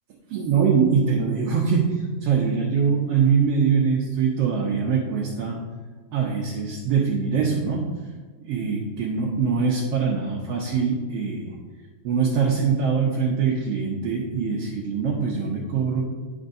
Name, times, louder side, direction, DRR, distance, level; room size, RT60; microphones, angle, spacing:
voice 1, 0.3-5.6 6.1-8.0 8.4-11.6 12.0-16.0, right 6 dB, 75° right, -1 dB, 1.5 m, -23 dB
10.5 x 5.4 x 2.6 m, 1.4 s
omnidirectional pair, 3.4 m